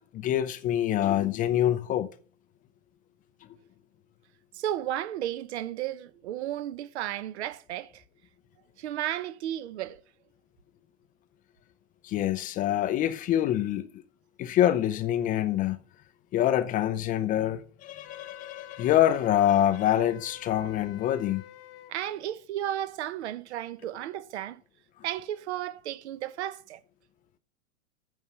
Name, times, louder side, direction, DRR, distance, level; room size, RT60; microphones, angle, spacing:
voice 1, 0.1-2.1 12.0-13.9 14.4-15.8 16.3-21.4, left 12 dB, 20° left, 0.5 m, -25 dB
voice 2, 4.5-8.0 8.8-10.0 21.9-24.6 25.0-26.8, right 12 dB, 60° right, 0.8 m, -33 dB
Wind instrument woodwind instrument, 18.0-21.9, left 11 dB, 40° left, 1.1 m, -48 dB
9.2 x 5.5 x 8.0 m
hypercardioid pair, 110°, 38 cm